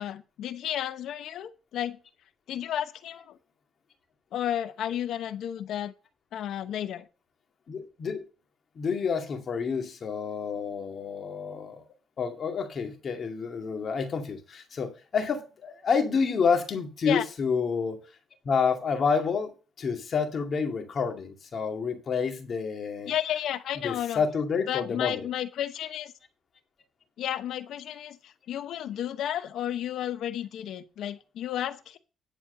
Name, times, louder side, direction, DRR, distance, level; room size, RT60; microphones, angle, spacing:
voice 1, 0.0-2.0 2.5-3.4 4.3-5.9 6.3-7.0 17.1-17.2 23.1-24.2 24.7-26.1 27.2-32.0, left 11 dB, 75° left, 0.9 m, -32 dB
voice 2, 7.7-8.2 8.8-11.8 12.2-18.0 18.4-19.5 19.8-23.1 23.8-25.3, left 5 dB, 50° left, 2.2 m, -29 dB
10.5 x 4.5 x 6.7 m
cardioid pair, 90°, 0 cm